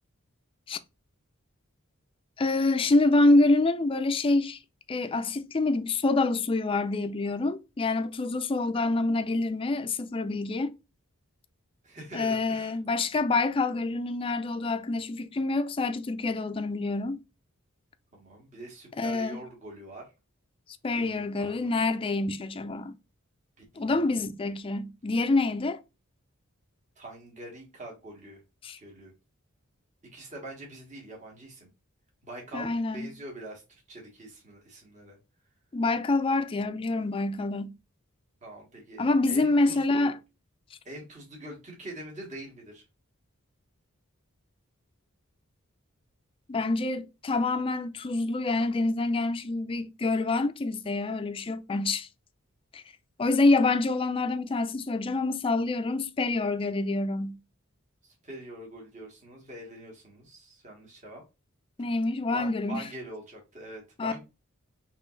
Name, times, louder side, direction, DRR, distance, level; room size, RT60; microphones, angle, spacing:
voice 1, 2.4-4.6 4.9-10.7 12.1-17.2 19.0-19.4 20.8-23.0 23.8-25.8 28.6-28.8 32.5-33.1 35.7-37.7 39.0-40.2 46.5-52.1 52.7-52.8 53.2-57.4 61.8-62.8 64.0-64.2, left 2 dB, 25° left, 0.3 m, -26 dB
voice 2, 11.8-12.7 18.1-20.1 20.9-21.8 23.6-24.0 27.0-28.4 28.8-29.1 30.0-31.7 32.2-33.6 33.9-35.2 38.4-40.1 40.8-42.8 58.0-61.2 62.3-64.2, right 1 dB, 35° right, 1.5 m, -44 dB
3.8 x 3.0 x 3.8 m
head